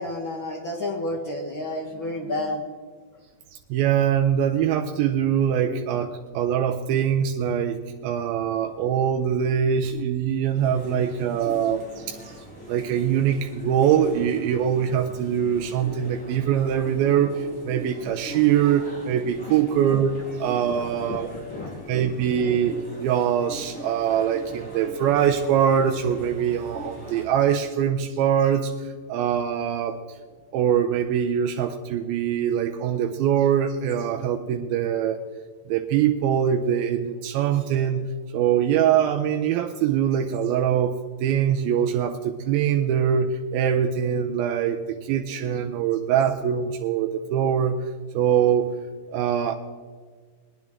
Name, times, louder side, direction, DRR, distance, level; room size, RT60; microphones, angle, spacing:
voice 1, 0.0-2.6 21.0-22.1, left 1 dB, 80° left, -3 dB, 1.1 m, -31 dB
voice 2, 3.7-7.8 8.0-12.3 12.7-21.3 21.9-30.0 30.5-35.2 35.7-38.0 38.3-47.8 48.1-48.7 49.1-49.6, right 9 dB, 90° right, 3 dB, 2.5 m, -23 dB
sound 1, 10.5-27.3, equal, ahead, 4.1 m, -41 dB
21.0 x 10.5 x 3.6 m, 1.5 s
omnidirectional pair, 4.2 m